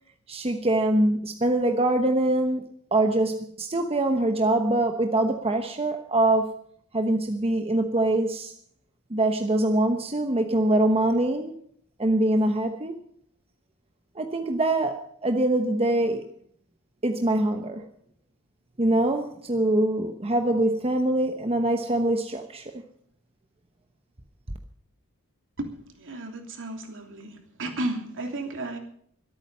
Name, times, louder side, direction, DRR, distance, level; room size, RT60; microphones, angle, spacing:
voice 1, 0.3-2.6 2.9-6.5 6.9-8.5 9.1-11.5 12.0-13.0 14.2-16.2 17.0-17.8 18.8-22.6, right 1 dB, 25° right, 1.0 m, -24 dB
voice 2, 25.6-28.8, right 2 dB, 60° right, 3.0 m, -33 dB
24.5 x 9.0 x 5.5 m
head